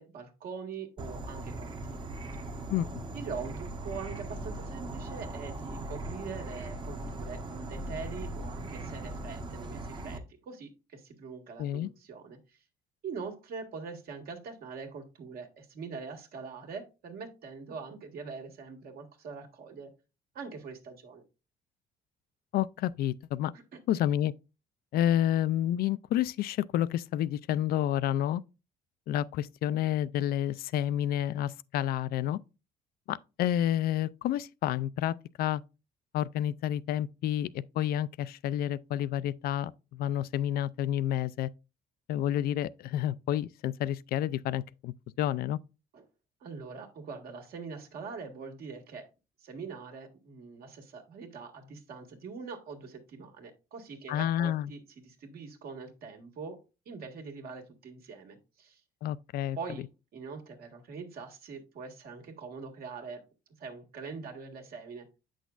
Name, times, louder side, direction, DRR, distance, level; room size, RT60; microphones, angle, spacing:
voice 1, 0.0-2.1 3.1-12.6 13.0-19.9 20.3-21.2 23.5-23.6 23.9-24.1 45.9-46.0 46.4-49.1 49.4-56.6 56.8-58.8 59.5-59.9 60.1-63.2 63.6-65.0, right 5 dB, 65° right, 1.7 m, -43 dB
Insect / Frog, 1.0-10.2, right 2 dB, 25° right, 0.9 m, -39 dB
voice 2, 2.7-3.0 11.6-11.9 22.5-23.5 23.9-24.3 24.9-28.4 29.1-32.4 33.1-35.6 36.1-41.5 42.1-45.6 54.1-54.7 59.0-59.6, left 11 dB, 65° left, 0.4 m, -29 dB
7.9 x 6.2 x 2.4 m
cardioid pair, 110°, 17 cm